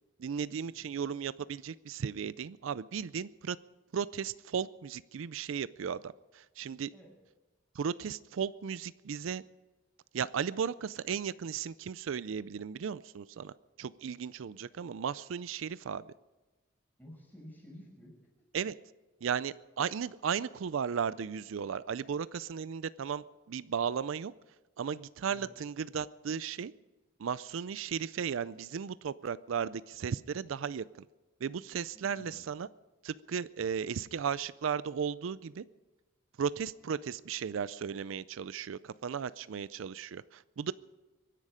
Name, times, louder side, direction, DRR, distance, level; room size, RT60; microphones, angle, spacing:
voice 1, 0.2-3.6 3.9-6.9 7.7-9.4 10.1-13.5 13.8-16.1 18.5-18.7 19.2-24.3 24.8-26.7 27.2-31.1 31.4-32.7 33.0-35.6 36.4-40.7, right 7 dB, 80° right, 17 dB, 0.4 m, -35 dB
voice 2, 17.0-18.1 25.3-25.5 31.9-32.4, equal, 10° left, -2 dB, 5.8 m, -52 dB
24.0 x 10.5 x 5.0 m, 1.2 s
head